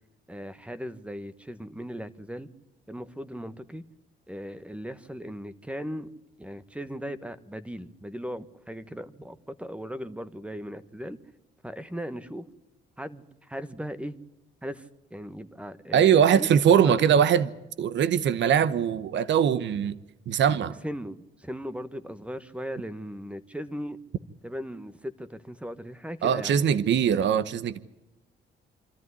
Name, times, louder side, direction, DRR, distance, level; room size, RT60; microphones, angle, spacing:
voice 1, 0.3-2.5 2.9-3.8 4.3-6.1 6.4-11.2 11.6-12.5 13.0-14.2 14.6-16.6 16.8-16.9 20.6-24.0 24.4-26.7, equal, 5° right, 1.3 m, -38 dB
voice 2, 15.9-17.5 17.8-20.0 20.3-20.7 26.2-27.8, right 8 dB, 65° right, 1.0 m, -21 dB
25.5 x 13.5 x 9.7 m
cardioid pair, 90°, 20 cm